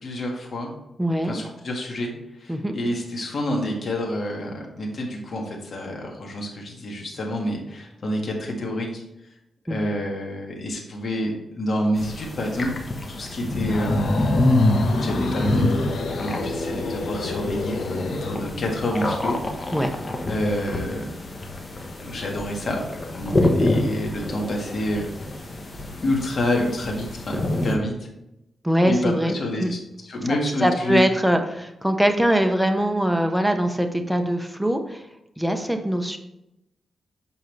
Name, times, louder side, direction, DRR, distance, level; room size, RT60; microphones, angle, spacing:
voice 1, 0.0-0.7 1.3-2.1 2.4-9.0 9.7-12.7 13.1-14.0 15.0-19.4 20.3-21.1 22.0-22.9 23.1-25.1 26.0-27.9 28.8-31.0, left 1 dB, 55° left, 0 dB, 1.7 m, -28 dB
voice 2, 1.0-1.4 2.5-2.7 9.7-9.8 19.7-19.9 23.3-23.9 28.6-29.3 29.6-29.7 30.6-35.0 35.4-36.2, equal, ahead, 5 dB, 0.8 m, -22 dB
sound 1, 12.0-27.8, left 1 dB, 35° left, 1.1 m, -26 dB
sound 2, 13.5-18.4, left 3 dB, 80° left, 0.9 m, -31 dB
7.3 x 5.3 x 3.3 m, 0.86 s
cardioid pair, 90°, 0 cm